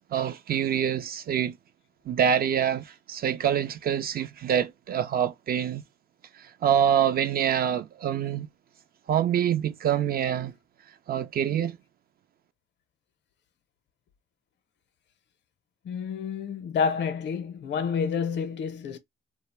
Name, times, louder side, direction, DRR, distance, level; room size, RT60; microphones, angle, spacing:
voice 1, 0.1-1.6 2.1-5.8 6.4-8.5 9.1-10.5 11.1-11.8, right 9 dB, 50° right, 0.4 m, -26 dB
voice 2, 15.8-19.0, left 6 dB, 65° left, 0.6 m, -29 dB
2.3 x 2.0 x 3.2 m
cardioid pair, 90°, 20 cm